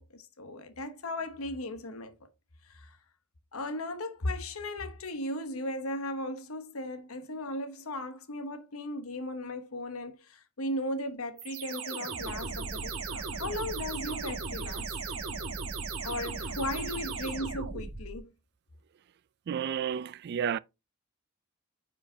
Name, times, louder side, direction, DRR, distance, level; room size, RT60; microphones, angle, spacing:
voice 1, 0.0-2.3 2.6-3.0 3.5-14.9 16.0-18.3, left 1 dB, 85° left, 1.0 m, -37 dB
sound 1, 11.4-18.2, right 4 dB, 85° right, 1.7 m, -36 dB
voice 2, 19.5-20.6, right 8 dB, 50° right, 0.3 m, -31 dB
9.4 x 5.0 x 2.7 m
head